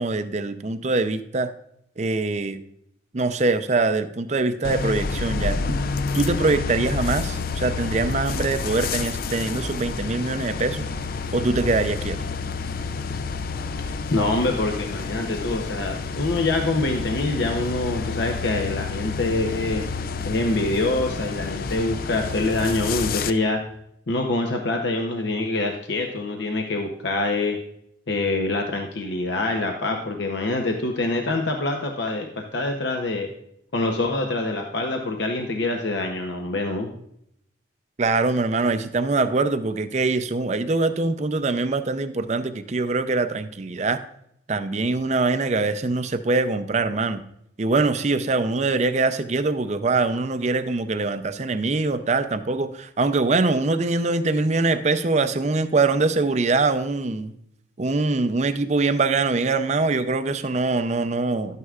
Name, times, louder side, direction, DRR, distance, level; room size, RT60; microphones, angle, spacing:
voice 1, 0.0-1.5 2.0-2.6 3.1-5.6 6.1-10.9 11.3-12.2 38.0-44.0 44.5-47.2 47.6-57.4 57.8-61.6, right 3 dB, 35° right, 10 dB, 0.5 m, -23 dB
sound 1, 4.6-23.3, left 4 dB, 50° left, 0.4 m, -29 dB
voice 2, 14.1-19.8 20.2-23.6 24.1-27.6 28.1-33.3 33.7-36.9, left 2 dB, 70° left, 3 dB, 0.8 m, -25 dB
12.0 x 9.4 x 2.4 m, 0.75 s
head